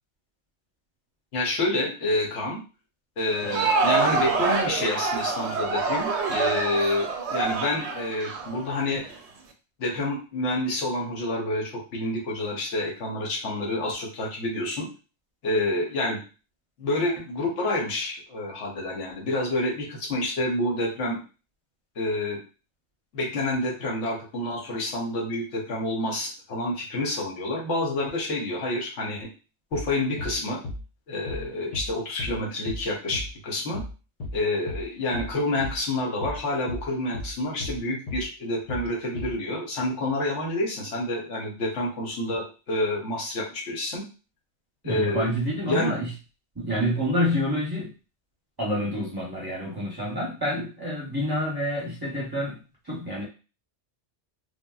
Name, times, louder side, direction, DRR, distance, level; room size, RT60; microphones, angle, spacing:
voice 1, 1.3-2.6 3.2-9.0 9.8-14.9 15.4-16.2 16.8-21.2 22.0-22.4 23.1-29.3 29.7-30.6 31.1-33.8 34.3-44.1 44.8-45.3 45.7-46.0, left 1 dB, 80° left, -1 dB, 1.2 m, -28 dB
Crowd, 3.2-9.1, right 4 dB, 75° right, 0.8 m, -26 dB
sound 1, 29.7-29.9 30.2-30.4 30.6-30.8 31.3-31.5 31.7-31.9 32.2-32.4 32.7-32.9 33.1-33.3 33.7-33.9 34.2-34.4 34.7-34.9 35.1-35.3 35.6-35.8 36.2-36.4 36.7-36.9 37.1-37.3 37.6-37.8 38.1-38.3 38.7-38.9 39.2-39.4, left 2 dB, 50° left, 0.7 m, -34 dB
voice 2, 44.8-46.1 46.5-47.9 48.6-52.6 52.8-53.2, equal, 25° right, -5 dB, 0.7 m, -28 dB
3.4 x 2.2 x 2.3 m, 0.33 s
omnidirectional pair, 1.2 m